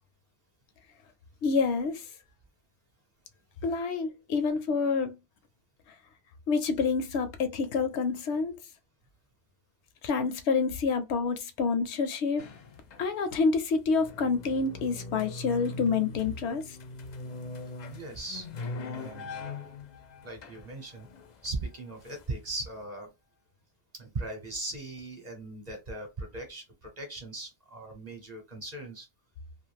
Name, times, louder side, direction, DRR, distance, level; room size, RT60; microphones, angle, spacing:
voice 1, 1.4-2.1 3.6-5.2 6.5-8.6 10.0-12.4 13.0-16.8, left 4 dB, 80° left, 0.9 m, -28 dB
sound 1, 12.4-13.4 13.8-22.7, left 3 dB, 55° left, 0.5 m, -41 dB
voice 2, 17.9-19.6 20.2-21.1 21.4-23.1 23.9-29.1, right 2 dB, 40° right, 0.9 m, -39 dB
2.5 x 2.4 x 3.2 m
omnidirectional pair, 1.1 m